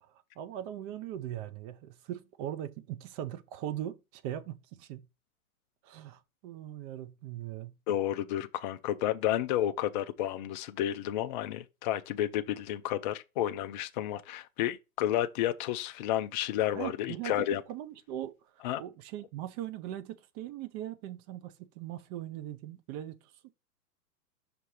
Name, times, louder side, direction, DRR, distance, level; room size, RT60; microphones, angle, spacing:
voice 1, 0.0-5.1 5.8-7.7 16.7-17.3 17.7-23.2, right 12 dB, 30° right, 0.5 m, -40 dB
voice 2, 7.9-17.6 18.6-18.8, left 12 dB, 35° left, 0.4 m, -31 dB
5.9 x 3.2 x 5.4 m
hypercardioid pair, 120°, 45 cm